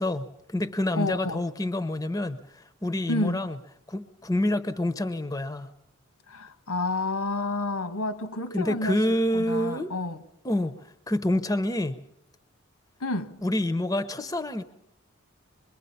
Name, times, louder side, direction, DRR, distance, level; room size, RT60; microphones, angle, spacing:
voice 1, 0.0-3.6 3.9-5.7 8.5-9.9 10.4-10.8 11.1-12.0 13.4-14.6, left 1 dB, 15° left, 0.8 m, -27 dB
voice 2, 1.0-1.4 3.1-3.5 6.3-9.0 9.3-10.2 13.0-13.4, left 2 dB, 85° left, 1.6 m, -30 dB
26.0 x 22.5 x 5.7 m
head